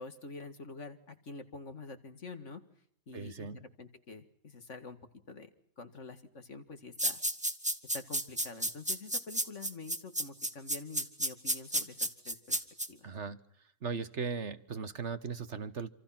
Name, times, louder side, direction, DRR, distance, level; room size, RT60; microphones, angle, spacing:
voice 1, 0.0-2.6 3.1-5.0 5.3-5.5 5.8-7.2 7.9-12.6 12.9-13.1, left 3 dB, 60° left, 9 dB, 2.4 m, -47 dB
voice 2, 3.1-3.6 13.0-13.4 13.8-15.9, right 5 dB, 55° right, 13 dB, 1.5 m, -38 dB
sound 1, 7.0-12.9, right 1 dB, 5° right, 1.6 m, -32 dB
27.5 x 26.5 x 5.9 m, 0.66 s
omnidirectional pair, 1.5 m